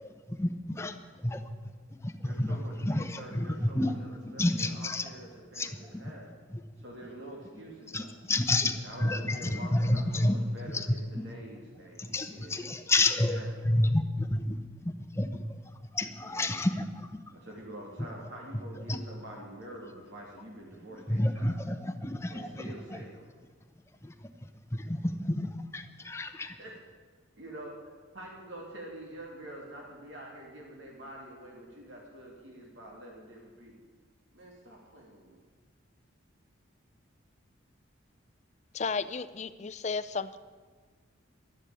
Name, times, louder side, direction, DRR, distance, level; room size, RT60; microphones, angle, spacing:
voice 1, 0.0-1.5 2.0-3.9 4.4-5.1 5.5-5.7 6.5-6.6 7.9-10.4 10.7-10.9 11.1-11.2 12.0-13.4 13.6-15.4 15.9-17.2 18.9-19.0 21.1-23.0 24.0-26.5, left 1 dB, 15° left, 7 dB, 0.8 m, -30 dB
voice 2, 2.2-6.3 6.8-8.2 8.8-12.7 13.2-13.4 16.2-16.5 17.3-21.5 22.3-23.3 26.1-26.2 26.6-26.7 27.4-27.8 28.1-33.7 34.3-35.5, right 1 dB, 65° right, -2 dB, 2.5 m, -46 dB
voice 3, 38.7-40.4, left 5 dB, 35° left, 14 dB, 0.5 m, -33 dB
11.5 x 11.0 x 8.3 m, 1.5 s
head